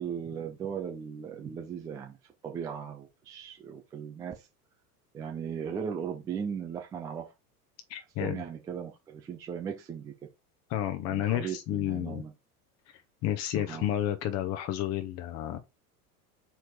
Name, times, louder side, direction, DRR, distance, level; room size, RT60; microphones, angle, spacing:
voice 1, 0.0-4.5 5.1-7.3 8.0-10.1 11.1-12.3 13.7-13.9, right 7 dB, 10° right, 0.3 m, -37 dB
voice 2, 7.9-8.4 10.7-12.2 13.2-15.6, left 12 dB, 35° left, 0.8 m, -31 dB
4.5 x 4.4 x 4.8 m
figure-of-eight pair, 80°, 48 cm